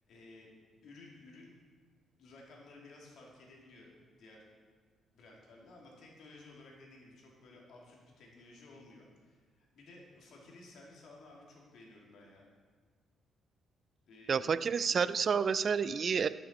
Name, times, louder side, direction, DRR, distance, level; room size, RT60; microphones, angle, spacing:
voice 1, 0.1-0.5 0.8-1.5 2.2-3.9 4.2-4.4 5.1-12.5 14.1-14.4, left 2 dB, 70° left, -2 dB, 2.4 m, -55 dB
voice 2, 14.3-16.3, right 6 dB, 45° right, 16 dB, 0.3 m, -29 dB
12.0 x 6.9 x 4.3 m, 1.5 s
cardioid pair, 90°, 0 cm